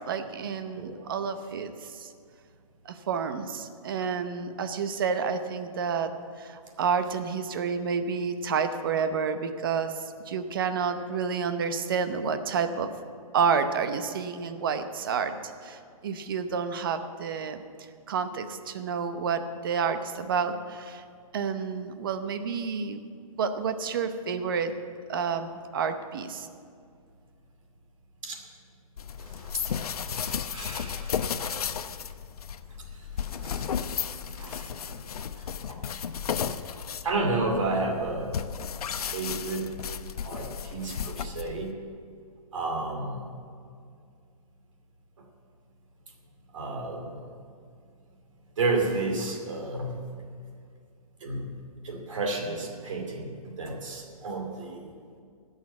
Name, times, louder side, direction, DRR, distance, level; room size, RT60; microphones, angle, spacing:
voice 1, 0.1-2.1 2.8-12.9 13.3-17.6 18.1-21.0 21.3-23.0 23.4-24.7 25.1-26.5, right 6 dB, 35° right, 9 dB, 0.8 m, -29 dB
sound 1, 29.0-41.7, left 7 dB, 90° left, 0.7 m, -34 dB
voice 2, 29.2-31.4 32.9-33.8 34.3-35.0 35.4-35.8 37.0-38.3 38.9-39.7 40.2-41.7 42.5-43.2 46.5-47.3 48.6-50.0 51.2-51.5 51.8-55.0, right 3 dB, 55° right, 2 dB, 2.4 m, -32 dB
16.0 x 6.5 x 8.2 m, 2.2 s
hypercardioid pair, 175°, 19 cm